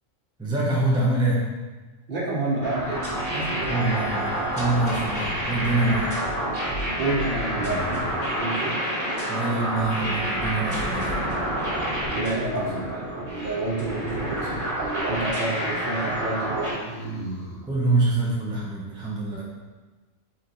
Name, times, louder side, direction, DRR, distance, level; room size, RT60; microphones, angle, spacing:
voice 1, 0.4-1.4 3.7-6.1 9.3-11.2 17.7-19.4, right 2 dB, 5° right, -5 dB, 0.5 m, -25 dB
voice 2, 2.1-3.8 7.0-8.8 12.1-16.9, right 2 dB, 45° right, -5 dB, 1.0 m, -29 dB
sound 1, 2.6-16.7, right 1 dB, 25° right, 1.3 m, -28 dB
sound 2, 4.5-5.2 7.3-8.2 12.0-13.1 16.4-17.6, right 1 dB, 85° left, 1.3 m, -37 dB
4.3 x 3.1 x 3.9 m, 1.3 s
omnidirectional pair, 1.4 m